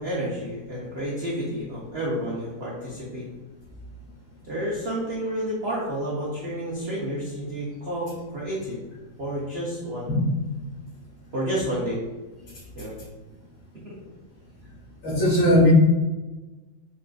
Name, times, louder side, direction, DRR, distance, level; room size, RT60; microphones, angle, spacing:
voice 1, 0.0-3.3 4.4-8.8 9.2-10.1 11.3-12.0 12.8-12.9 13.8-13.9, equal, 85° right, -6 dB, 0.5 m, -30 dB
voice 2, 15.0-15.7, left 1 dB, 80° left, -7 dB, 2.3 m, -18 dB
5.3 x 2.5 x 2.3 m, 1.2 s
omnidirectional pair, 2.1 m